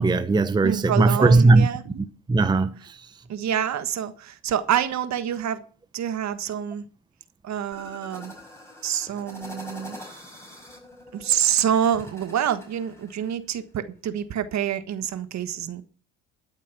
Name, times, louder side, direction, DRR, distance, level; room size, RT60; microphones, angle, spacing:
voice 1, 0.0-1.7 2.3-2.7, right 3 dB, 15° right, 0.7 m, -18 dB
voice 2, 0.6-1.8 3.3-5.6 5.9-6.8 7.4-8.3 8.8-10.0 11.1-15.8, right 9 dB, 55° right, 1.4 m, -27 dB
sound 1, 7.7-13.3, left 1 dB, 10° left, 5.3 m, -44 dB
12.5 x 7.4 x 6.1 m
supercardioid pair, 75°, 34 cm